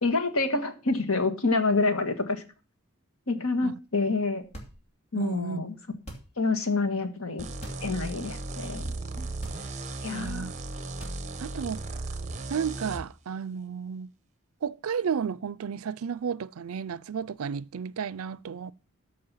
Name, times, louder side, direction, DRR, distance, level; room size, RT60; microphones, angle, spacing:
voice 1, 0.0-2.4 3.3-4.4 5.1-5.7 6.4-7.4 7.8-9.2 10.0-10.5, left 3 dB, 80° left, 1.6 m, -27 dB
sound 1, 4.4-5.1 5.9-6.5 7.5-8.0 8.3-8.4 9.3-10.0 10.9-11.5, right 1 dB, 30° left, 2.5 m, -44 dB
voice 2, 5.1-5.6 10.1-10.5 11.4-11.8 12.5-14.1 14.6-18.7, right 7 dB, 85° right, 0.5 m, -32 dB
sound 2, 7.4-13.0, right 2 dB, 35° right, 1.2 m, -36 dB
13.5 x 5.3 x 5.6 m
head